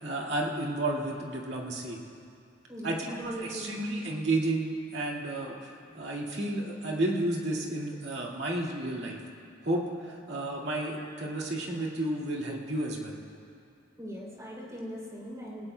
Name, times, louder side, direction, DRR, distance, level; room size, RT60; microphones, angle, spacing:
voice 1, 0.0-2.0 2.8-9.2 9.6-13.2, right 1 dB, 65° right, -2 dB, 1.9 m, -32 dB
voice 2, 2.7-3.7 14.0-15.7, equal, 20° right, -5 dB, 3.0 m, -40 dB
20.0 x 18.5 x 2.2 m, 2.4 s
head